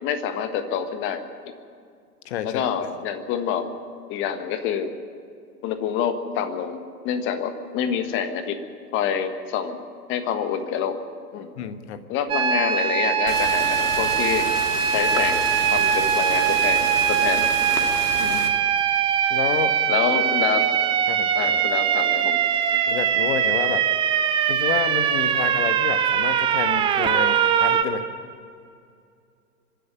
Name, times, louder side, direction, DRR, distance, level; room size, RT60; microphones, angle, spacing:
voice 1, 0.0-1.2 2.4-3.7 4.1-4.9 5.6-8.6 8.9-9.8 10.1-11.0 11.3-11.5 12.1-14.5 14.9-17.8 19.9-20.6 21.3-22.4 22.7-22.8, left 8 dB, 25° left, 9 dB, 1.5 m, -27 dB
voice 2, 2.2-2.9 11.6-12.0 18.2-18.5 19.3-19.7 21.1-21.6 22.9-23.8 24.5-28.0, left 9 dB, 45° left, 10 dB, 1.4 m, -29 dB
sound 1, 12.3-27.8, right 8 dB, 10° right, 0.6 m, -22 dB
sound 2, 13.3-18.5, left 2 dB, 80° left, 2.8 m, -31 dB
24.5 x 11.0 x 9.8 m, 2.3 s
figure-of-eight pair, 110°, 47 cm